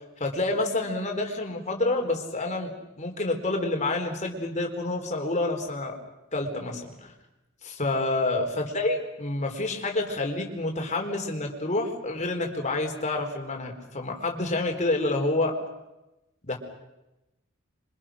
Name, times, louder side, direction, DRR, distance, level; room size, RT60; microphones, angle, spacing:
voice 1, 0.2-2.7 3.0-6.0 6.3-7.1 7.6-15.5 16.4-16.6, left 2 dB, 35° left, 3 dB, 4.1 m, -28 dB
28.0 x 24.5 x 6.4 m, 0.97 s
head